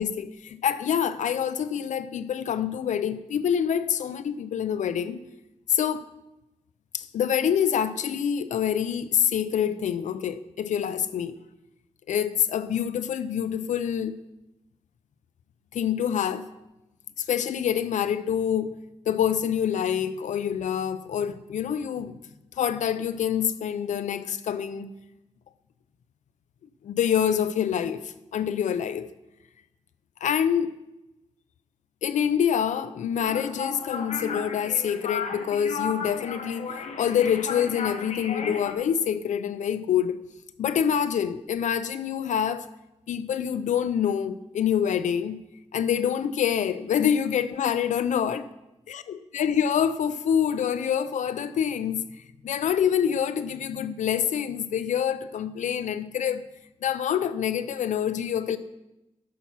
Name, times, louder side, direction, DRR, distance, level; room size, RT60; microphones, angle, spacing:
voice 1, 0.0-5.2 5.7-6.1 6.9-11.3 12.1-14.2 15.7-16.5 17.2-18.8 19.1-22.2 22.6-24.9 26.8-29.1 30.2-30.7 32.0-40.3 40.6-42.7 43.1-45.4 45.7-48.5 48.9-52.0 52.4-56.4 56.8-58.6, left 8 dB, 85° left, 0.5 m, -26 dB
sound 1, 33.2-38.7, left 5 dB, 70° left, 0.9 m, -34 dB
8.3 x 6.0 x 5.6 m
cardioid pair, 95°, 12 cm